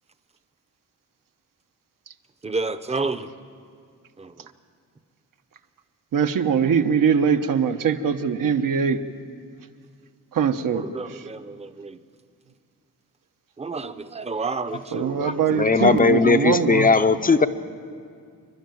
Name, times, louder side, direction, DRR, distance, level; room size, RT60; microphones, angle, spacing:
voice 1, 2.4-3.3 4.2-4.5 10.7-12.0 13.6-15.5 17.4-17.5, right 3 dB, 20° right, 11 dB, 0.7 m, -30 dB
voice 2, 6.1-9.0 10.3-10.8 14.9-16.9, right 6 dB, 75° right, 7 dB, 1.0 m, -22 dB
voice 3, 15.2-17.5, left 4 dB, 25° left, 10 dB, 0.6 m, -18 dB
27.5 x 12.0 x 9.2 m, 2.2 s
wide cardioid pair, 160°, 33 cm